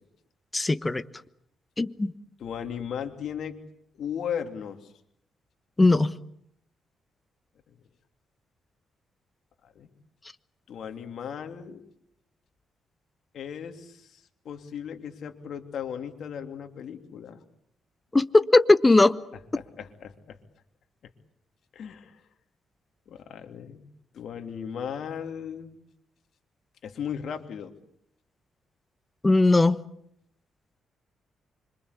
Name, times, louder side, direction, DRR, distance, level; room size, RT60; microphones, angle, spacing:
voice 1, 0.5-1.0 1.8-2.1 5.8-6.1 18.1-19.2 29.2-29.8, left 2 dB, 15° left, 13 dB, 1.1 m, -19 dB
voice 2, 2.4-3.6 4.0-4.9 7.7-7.8 9.6-9.9 10.7-11.8 13.3-17.4 19.5-20.4 21.7-22.2 23.1-23.8 24.1-25.8 26.8-27.7, left 8 dB, 70° left, 5 dB, 3.1 m, -36 dB
26.0 x 25.0 x 8.4 m, 0.71 s
cardioid pair, 105°, 0 cm